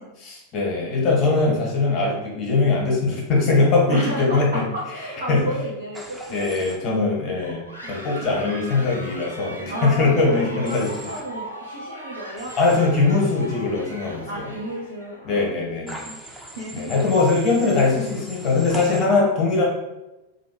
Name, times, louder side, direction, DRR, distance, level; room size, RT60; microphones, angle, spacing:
voice 1, 0.2-4.6 5.3-5.5 6.3-10.9 12.6-14.5 15.2-16.0 16.7-19.7, left 3 dB, 35° left, -2 dB, 1.3 m, -21 dB
voice 2, 3.9-7.4 7.8-7.9 8.2-8.4 9.7-12.5 14.3-15.7 16.0-16.2 16.5-16.9 17.4-17.5, right 1 dB, 70° right, -7 dB, 0.9 m, -32 dB
Human voice / Train, 5.9-6.8 10.7-11.2 12.4-12.8 15.9-19.0, right 1 dB, 5° right, 0.8 m, -40 dB
sound 1, 7.4-15.2, right 1 dB, 90° left, 0.7 m, -39 dB
3.1 x 2.6 x 4.5 m, 0.99 s
figure-of-eight pair, 90°, 0 cm